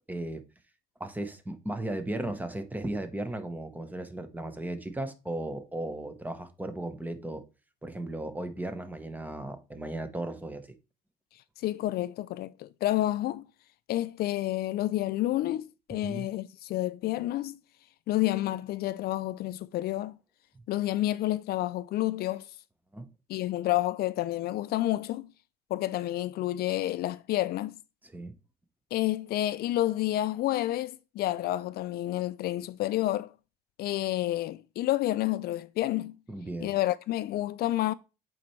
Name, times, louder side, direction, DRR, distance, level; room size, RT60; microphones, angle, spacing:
voice 1, 0.1-0.4 1.0-7.4 7.8-10.7 15.9-16.3 22.9-23.1 28.0-28.3 36.3-36.7, right 1 dB, 10° right, 1.1 m, -36 dB
voice 2, 11.6-13.5 13.9-17.6 18.1-20.2 20.7-22.5 23.3-25.3 25.7-27.8 28.9-33.3 33.8-36.2 36.6-37.9, left 15 dB, 65° left, 0.4 m, -29 dB
8.4 x 4.5 x 3.2 m
cardioid pair, 110°, 17 cm